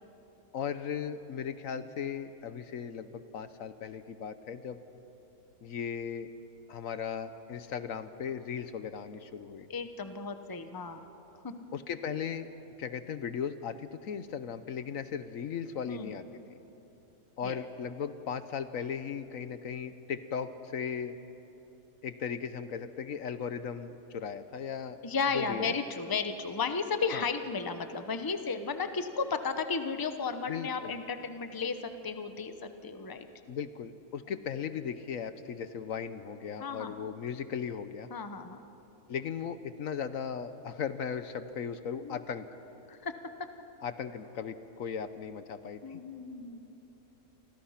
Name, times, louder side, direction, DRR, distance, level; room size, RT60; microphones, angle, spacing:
voice 1, 0.5-4.8 5.6-6.3 6.7-9.7 11.7-12.5 12.8-16.3 17.4-21.2 22.0-25.0 25.3-25.7 27.1-27.3 30.5-31.0 33.5-38.1 39.1-42.5 43.8-46.0, left 7 dB, 65° left, 11 dB, 1.2 m, -37 dB
voice 2, 9.7-11.1 11.4-11.7 15.9-16.1 17.4-17.7 25.0-33.3 36.6-36.9 38.1-38.7 42.0-42.2 42.9-43.1 43.4-43.5 45.8-46.7, left 5 dB, 15° left, 8 dB, 0.8 m, -34 dB
29.5 x 24.5 x 5.8 m, 3.0 s
omnidirectional pair, 1.6 m